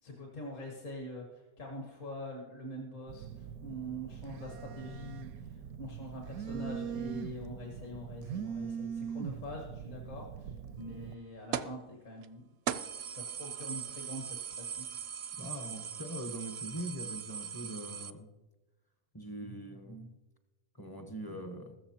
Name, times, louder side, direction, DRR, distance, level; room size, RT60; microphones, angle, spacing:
voice 1, 0.0-12.4 13.1-14.9, equal, 60° left, 0 dB, 1.7 m, -44 dB
Telephone, 3.1-11.1, right 7 dB, 85° right, 1.1 m, -41 dB
sound 1, 11.5-11.8 12.2-12.3 12.7-18.1, right 8 dB, 65° right, 0.6 m, -39 dB
voice 2, 15.4-18.3 19.1-20.2 20.8-21.8, right 1 dB, 20° left, 6 dB, 0.6 m, -42 dB
15.0 x 14.0 x 2.9 m, 1.1 s
omnidirectional pair, 1.5 m